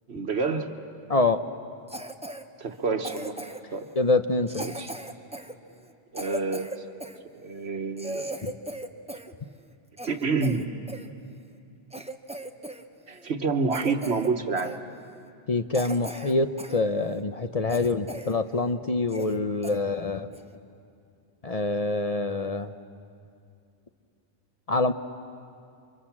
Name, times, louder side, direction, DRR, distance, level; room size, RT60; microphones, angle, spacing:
voice 1, 0.1-0.7 2.6-3.3 3.7-3.9 4.6-4.9 6.1-6.7 7.4-8.3 10.1-10.7 13.1-14.8, right 4 dB, 80° right, 6 dB, 1.6 m, -28 dB
Cough, 1.9-2.4 3.0-3.7 4.5-7.2 7.6-7.7 8.0-9.3 9.6-11.1 11.5-11.6 11.9-12.8 13.1-13.3 13.7-14.3 14.6-14.8 15.3-15.4 15.7-16.8 17.2-17.3 17.7-18.4 18.7-18.8 19.1-19.4 19.6-19.8 20.3-20.5, right 1 dB, 5° right, 0.8 m, -38 dB
voice 2, 4.0-4.6 8.4-8.5 15.5-20.3 21.4-22.7 24.7-24.9, left 3 dB, 40° left, 8 dB, 0.8 m, -25 dB
30.0 x 24.5 x 7.3 m, 2.4 s
omnidirectional pair, 1.1 m